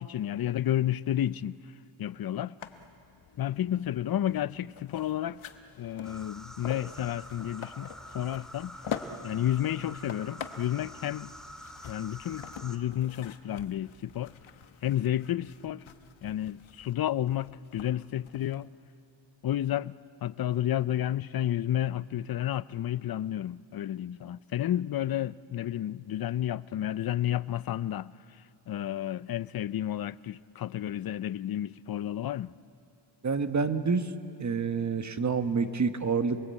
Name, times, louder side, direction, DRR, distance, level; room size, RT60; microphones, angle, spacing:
voice 1, 0.0-1.6 2.0-2.5 3.4-5.4 5.8-7.9 8.1-8.8 9.2-11.3 11.9-14.3 14.8-15.8 16.2-18.7 19.4-19.9 20.2-28.1 28.7-32.5, left 12 dB, 50° left, 0.5 m, -31 dB
sound 1, 2.6-18.6, left 7 dB, 85° left, 1.3 m, -45 dB
sound 2, 6.0-12.8, equal, ahead, 2.2 m, -47 dB
voice 2, 33.2-34.1 34.4-36.4, right 5 dB, 40° right, 1.3 m, -28 dB
28.5 x 21.5 x 8.4 m
wide cardioid pair, 100°, 46 cm